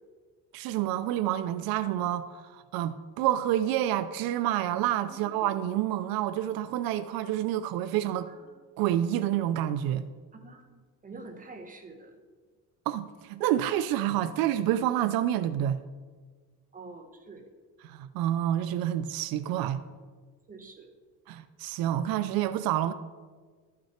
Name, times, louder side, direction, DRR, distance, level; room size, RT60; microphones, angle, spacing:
voice 1, 0.5-8.3 8.8-10.1 12.9-15.8 17.8-19.8 21.3-22.9, right 12 dB, 70° right, 13 dB, 0.5 m, -28 dB
voice 2, 10.3-12.1 16.7-17.5 20.5-20.9, right 3 dB, 20° right, 3 dB, 1.0 m, -46 dB
12.5 x 6.0 x 4.3 m, 1.5 s
cardioid pair, 140°, 37 cm